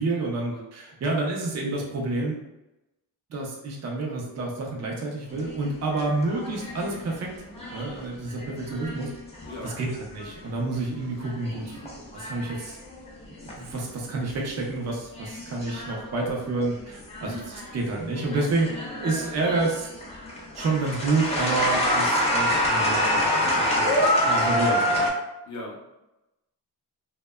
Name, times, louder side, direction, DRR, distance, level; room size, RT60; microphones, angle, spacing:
voice 1, 0.0-2.4 3.3-7.3 7.7-9.1 9.6-12.8 13.5-18.8 19.0-19.9 20.6-25.0, right 3 dB, 40° right, -1 dB, 0.5 m, -29 dB
sound 1, 5.3-10.6 11.0-13.8 14.1-14.6 15.2-17.8 18.2-25.1, equal, 15° left, 0.4 m, -27 dB
voice 2, 17.2-17.5 25.4-25.8, left 1 dB, 45° left, -2 dB, 0.7 m, -39 dB
2.7 x 2.1 x 2.2 m, 0.96 s
wide cardioid pair, 145°, 40 cm